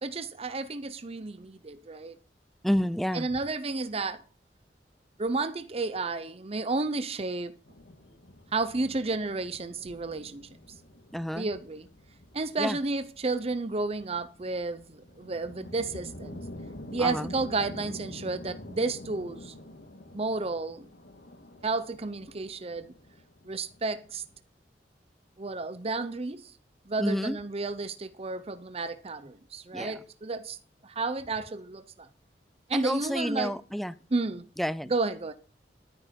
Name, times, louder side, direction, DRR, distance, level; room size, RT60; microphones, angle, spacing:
voice 1, 0.0-2.2 3.1-4.2 5.2-7.5 8.5-10.5 11.4-11.9 12.3-16.4 16.9-19.5 20.1-20.9 21.6-22.9 23.5-24.2 25.4-26.5 26.9-30.6 30.8-32.1 32.7-33.5 34.1-34.4 34.9-35.3, right 3 dB, 35° right, 0.8 m, -32 dB
voice 2, 2.6-3.3 11.1-11.5 12.6-12.8 17.0-17.3 27.0-27.4 29.7-30.0 32.7-33.9 34.6-34.9, equal, ahead, 0.5 m, -30 dB
sound 1, 7.6-24.3, left 1 dB, 75° left, 1.9 m, -47 dB
11.5 x 9.9 x 5.3 m
head